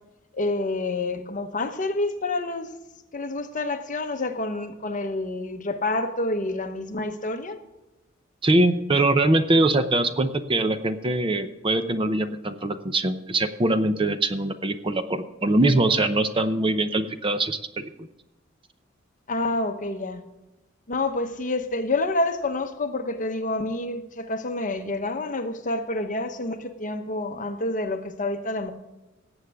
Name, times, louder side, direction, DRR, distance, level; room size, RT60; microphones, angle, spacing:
voice 1, 0.3-2.7 3.1-7.6 19.3-20.2 20.9-28.7, left 2 dB, 40° left, 1.0 m, -28 dB
voice 2, 8.4-18.1, right 2 dB, 25° right, 0.7 m, -23 dB
18.0 x 8.1 x 3.5 m
head